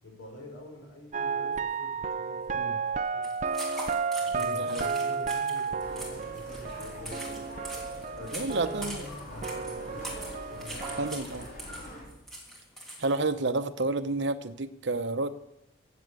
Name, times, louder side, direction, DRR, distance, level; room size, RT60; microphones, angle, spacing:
voice 1, 0.0-3.2 4.2-7.5 8.1-11.2, left 1 dB, 90° left, 0 dB, 5.4 m, -46 dB
sound 1, 1.1-9.1 9.4-11.2, right 5 dB, 35° right, 0.4 m, -33 dB
sound 2, 3.2-13.2, right 1 dB, ahead, 3.2 m, -43 dB
voice 2, 4.3-4.9 8.3-9.1 11.0-11.5 13.0-15.3, right 3 dB, 65° right, 9 dB, 0.8 m, -30 dB
sound 3, 5.8-12.0, equal, 45° left, 4.8 m, -44 dB
15.5 x 7.7 x 8.3 m, 0.87 s
head